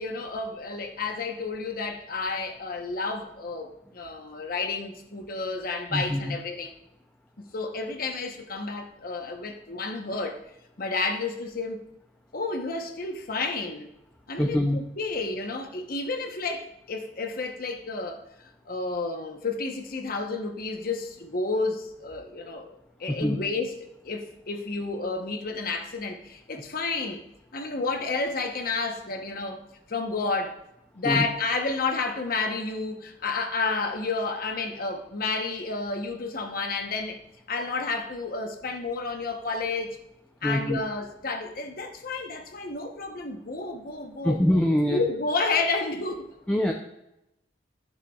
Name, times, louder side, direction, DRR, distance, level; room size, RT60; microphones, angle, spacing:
voice 1, 0.0-6.7 7.5-10.4 10.8-11.8 12.3-13.9 14.3-18.2 18.7-23.7 24.0-27.2 27.5-30.6 30.9-37.2 37.5-40.0 40.4-44.4 44.9-46.2, left 3 dB, 50° left, 0.9 m, -31 dB
voice 2, 5.9-6.4 14.4-14.8 23.1-23.4 31.0-31.2 40.4-40.8 44.2-45.0 46.5-46.7, left 1 dB, 10° left, 0.5 m, -24 dB
12.0 x 6.7 x 2.4 m
head